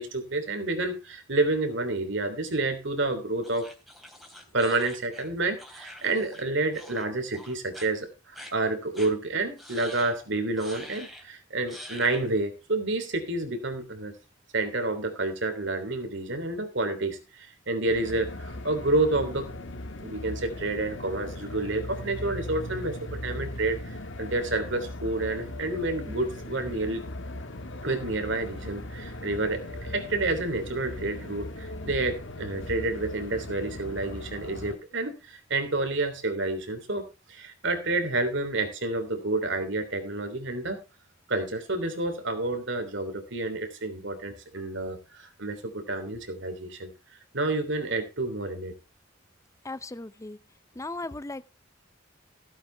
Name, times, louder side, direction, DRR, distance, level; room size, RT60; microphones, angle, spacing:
voice 1, 0.0-3.7 4.5-14.1 14.5-19.5 20.0-27.0 27.8-40.8 41.3-48.8, right 2 dB, 65° right, 3.2 m, -29 dB
sound 1, 3.4-6.5 6.7-7.1 7.3-7.9 8.3-8.5 8.9-9.1 9.6-10.2 10.6-11.2 11.7-12.3, equal, ahead, 3.3 m, -45 dB
sound 2, 17.9-34.8, left 1 dB, 70° left, 1.9 m, -38 dB
voice 2, 49.6-50.4 50.8-51.4, left 2 dB, 15° left, 0.5 m, -37 dB
16.0 x 9.2 x 3.4 m
head